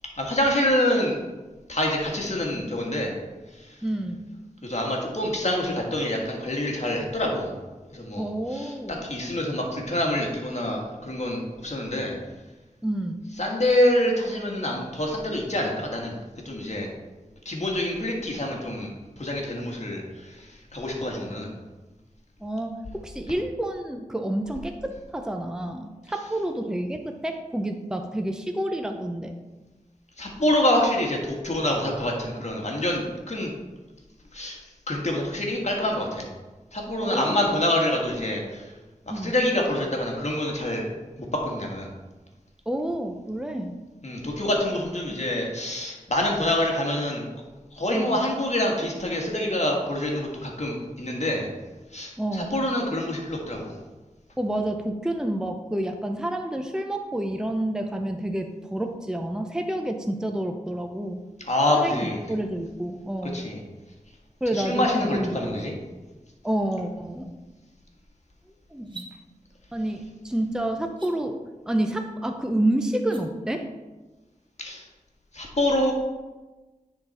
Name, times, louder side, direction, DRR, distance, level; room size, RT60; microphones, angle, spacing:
voice 1, 0.2-1.2 1.7-3.1 3.5-3.7 4.6-7.5 7.9-12.1 13.4-16.9 17.4-18.9 19.2-21.5 30.2-33.5 34.3-34.6 34.9-36.3 36.7-38.7 39.1-40.9 41.2-41.9 44.0-47.3 47.7-51.5 51.9-53.8 61.5-62.2 63.3-63.6 64.5-65.7 74.6-74.9 75.3-75.9, left 1 dB, 50° left, -1 dB, 1.7 m, -26 dB
voice 2, 3.8-4.3 8.2-9.1 12.8-13.2 22.4-29.3 37.0-37.5 39.1-39.3 42.7-43.8 47.9-48.3 52.2-52.6 54.4-61.2 61.7-63.5 64.4-64.9 65.1-65.6 66.4-67.3 68.7-69.1 69.7-71.4 71.7-73.7, right 1 dB, 5° right, 5 dB, 0.6 m, -29 dB
sound 1, 68.8-69.1 70.9-71.1 72.9-73.2, right 4 dB, 35° right, 1.4 m, -43 dB
9.5 x 4.0 x 4.3 m, 1.2 s
wide cardioid pair, 45°, 14 cm